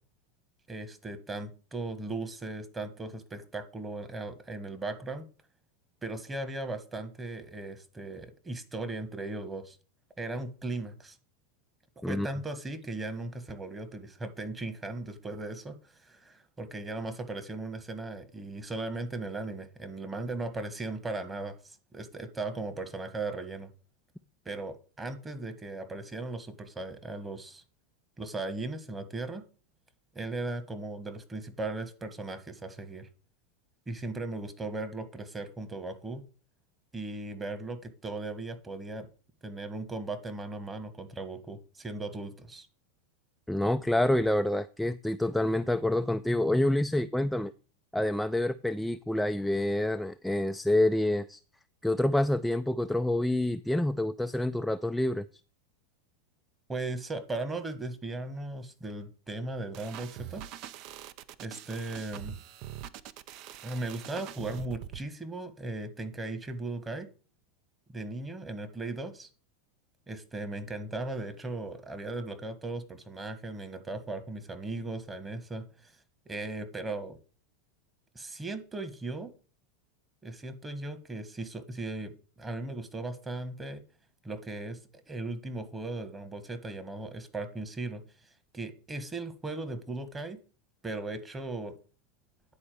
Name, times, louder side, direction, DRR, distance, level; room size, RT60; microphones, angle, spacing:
voice 1, 0.7-5.3 6.0-9.8 10.2-11.2 12.1-15.8 16.0-23.7 24.5-27.6 28.2-29.4 30.1-33.1 33.9-36.2 36.9-39.1 39.4-42.7 56.7-60.4 61.4-62.4 63.6-67.1 67.9-69.3 70.1-75.9 76.3-77.2 78.2-79.3 80.2-83.8 84.2-84.8 85.1-88.0 88.5-90.4 90.8-91.7, right 2 dB, 15° right, 10 dB, 1.6 m, -37 dB
voice 2, 43.5-47.5 47.9-51.4 51.8-55.3, left 1 dB, 5° left, 8 dB, 0.4 m, -27 dB
sound 1, 59.7-65.0, right 11 dB, 50° right, 0.6 m, -43 dB
9.8 x 4.4 x 6.8 m, 0.37 s
hypercardioid pair, 100°, 0 cm